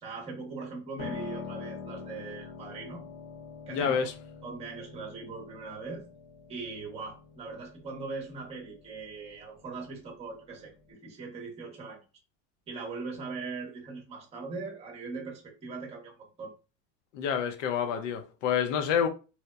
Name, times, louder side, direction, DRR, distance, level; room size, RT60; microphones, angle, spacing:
voice 1, 0.0-3.0 3.7-4.1 4.4-6.1 6.5-12.0 12.7-16.5, right 4 dB, 15° right, 0.7 m, -40 dB
Piano, 1.0-10.9, left 5 dB, 30° left, 0.5 m, -45 dB
voice 2, 3.7-4.1 17.1-19.1, left 7 dB, 85° left, 0.6 m, -28 dB
2.8 x 2.0 x 2.2 m
supercardioid pair, 150°, 36 cm